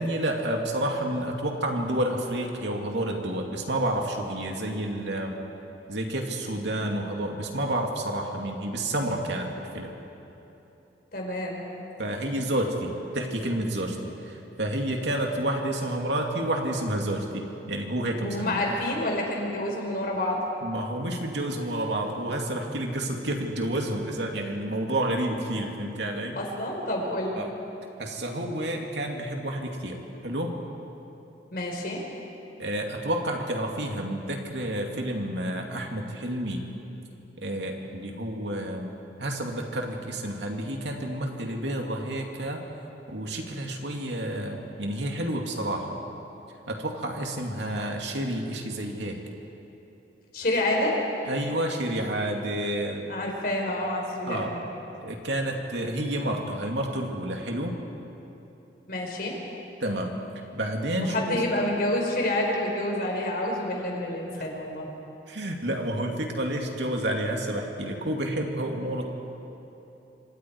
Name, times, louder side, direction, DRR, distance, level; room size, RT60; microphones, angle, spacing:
voice 1, 0.0-5.3 5.9-9.9 12.0-14.0 14.2-18.6 20.6-26.4 27.4-27.5 28.0-30.0 30.2-30.5 32.6-36.6 37.4-38.9 39.2-42.6 43.1-46.0 46.7-49.2 51.3-53.0 54.2-54.5 55.0-57.8 59.8-60.1 60.5-61.4 65.3-69.1, right 1 dB, 80° right, 1 dB, 2.7 m, -30 dB
voice 2, 11.1-11.6 18.2-20.4 26.3-27.4 31.5-32.0 50.3-51.0 53.1-54.6 58.9-59.3 61.0-64.9, left 1 dB, 55° left, 0 dB, 4.6 m, -28 dB
26.5 x 26.0 x 4.8 m, 3.0 s
head